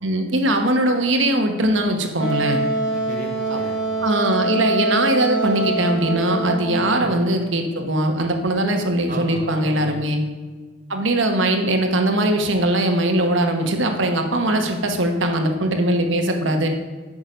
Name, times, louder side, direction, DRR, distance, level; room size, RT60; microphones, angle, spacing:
voice 1, 0.0-2.6 3.5-3.6 4.0-10.2 10.9-16.7, right 1 dB, 75° right, 4 dB, 1.2 m, -21 dB
Wind instrument woodwind instrument, 2.2-6.9, right 2 dB, 60° left, 1.8 m, -24 dB
voice 2, 2.9-4.1 6.7-7.1 9.1-10.1, right 2 dB, 45° right, 2 dB, 1.1 m, -36 dB
8.8 x 6.1 x 5.2 m, 1.4 s
head